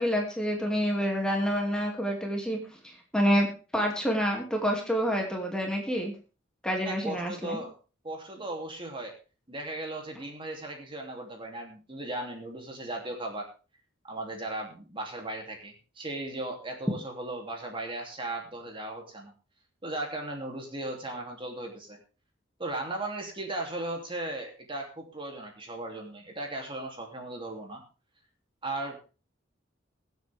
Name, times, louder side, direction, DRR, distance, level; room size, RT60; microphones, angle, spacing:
voice 1, 0.0-2.6 2.8-6.1 6.6-7.6, equal, 5° left, 1 dB, 2.6 m, -28 dB
voice 2, 6.8-7.7 8.0-9.1 9.5-13.5 14.0-19.3 19.8-22.0 22.6-27.8 28.6-29.0, right 2 dB, 25° right, 2 dB, 3.0 m, -37 dB
22.5 x 8.1 x 3.6 m, 0.34 s
head